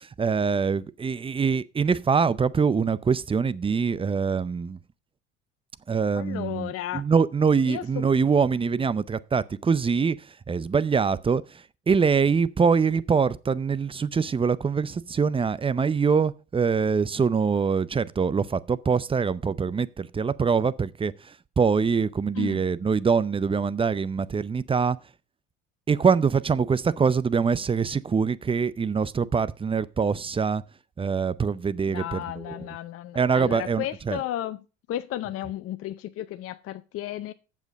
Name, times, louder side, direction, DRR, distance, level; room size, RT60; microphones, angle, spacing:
voice 1, 0.0-4.8 5.9-25.0 25.9-30.6 31.0-32.7 33.1-34.2, right 5 dB, 15° right, 0.5 m, -24 dB
voice 2, 6.2-7.0 7.6-8.0 22.4-22.6 31.9-34.6 34.9-37.3, left 13 dB, 45° left, 0.6 m, -33 dB
8.1 x 7.2 x 5.2 m
hypercardioid pair, 65°, 32 cm